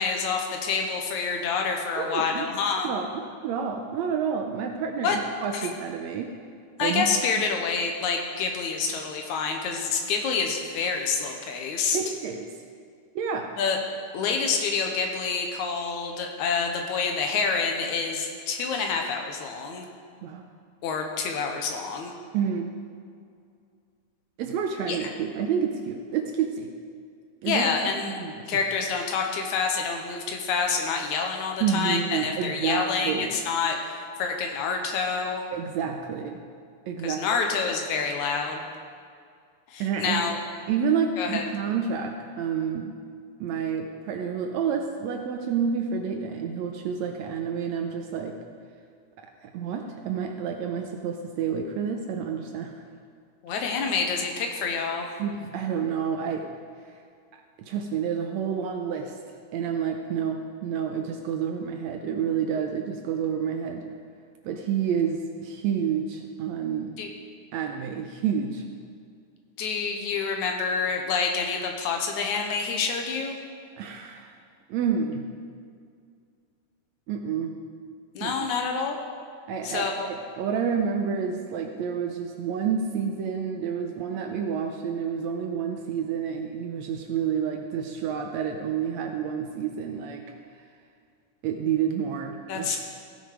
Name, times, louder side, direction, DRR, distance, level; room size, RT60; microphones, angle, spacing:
voice 1, 0.0-2.9 5.0-5.2 5.5-5.7 6.8-12.0 13.6-13.8 14.1-19.9 20.8-22.1 24.9-25.0 27.5-28.2 28.5-35.4 37.0-38.7 39.7-40.4 41.2-41.4 53.4-55.1 67.0-67.1 69.6-73.4 78.2-79.0 79.6-80.1 92.5-92.8, left 5 dB, 75° left, 3 dB, 2.3 m, -27 dB
voice 2, 2.0-2.5 2.8-6.3 6.8-7.1 11.9-12.5 13.2-13.5 20.2-20.4 22.3-22.7 24.4-26.7 27.4-27.7 28.0-28.5 31.6-33.3 35.5-36.4 36.9-37.4 39.8-40.2 40.7-42.9 43.4-48.4 49.2-52.8 55.2-56.5 57.6-59.1 59.5-63.8 64.4-67.0 67.5-68.6 73.8-74.3 74.7-75.3 77.1-77.6 78.2-78.5 79.5-90.2 91.4-92.8, right 7 dB, 80° right, 3 dB, 1.7 m, -29 dB
16.0 x 6.4 x 5.0 m, 2.2 s
omnidirectional pair, 3.6 m